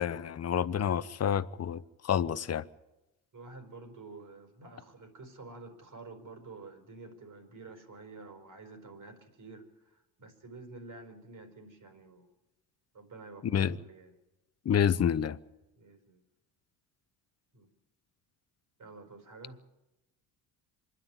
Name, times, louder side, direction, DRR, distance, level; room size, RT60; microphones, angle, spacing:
voice 1, 0.0-2.6 13.4-13.8 14.6-15.4, left 8 dB, 35° left, 0.9 m, -28 dB
voice 2, 0.6-1.0 3.3-12.3 12.9-14.1 15.7-16.2 17.5-17.7 18.8-19.6, right 3 dB, 40° right, 4.8 m, -49 dB
25.5 x 11.0 x 9.1 m
supercardioid pair, 70°, 46 cm